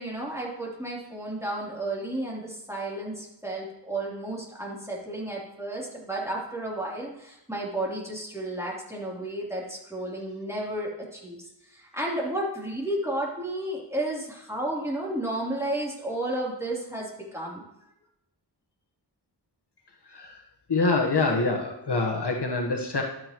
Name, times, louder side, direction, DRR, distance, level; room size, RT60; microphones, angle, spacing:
voice 1, 0.0-17.6, right 1 dB, 5° right, -5 dB, 3.2 m, -32 dB
voice 2, 20.7-23.0, left 3 dB, 65° left, 1 dB, 1.2 m, -25 dB
12.0 x 7.6 x 3.0 m, 0.84 s
wide cardioid pair, 55°, 44 cm